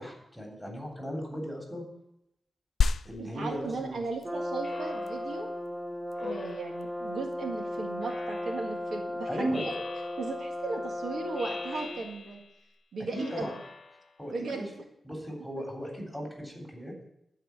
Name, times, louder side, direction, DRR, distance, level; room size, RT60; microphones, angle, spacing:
voice 1, 0.0-1.8 3.0-4.0 9.3-9.7 13.1-13.5 14.2-14.7 15.0-16.9, right 1 dB, ahead, 0 dB, 3.4 m, -36 dB
sound 1, 2.8-12.8, left 5 dB, 75° left, 0.4 m, -37 dB
voice 2, 3.2-5.5 6.2-9.7 10.2-12.4 12.9-13.5 14.3-14.7 15.6-15.7, right 3 dB, 80° right, 2 dB, 1.8 m, -37 dB
Brass instrument, 4.2-12.0, left 1 dB, 40° right, 1.0 m, -36 dB
Speech synthesizer, 4.6-5.4 6.2-7.1 8.0-8.8 9.5-10.5 11.4-12.6 13.1-14.2, left 4 dB, 45° left, 1.0 m, -44 dB
12.5 x 4.8 x 8.1 m, 0.82 s
wide cardioid pair, 95°, 0 cm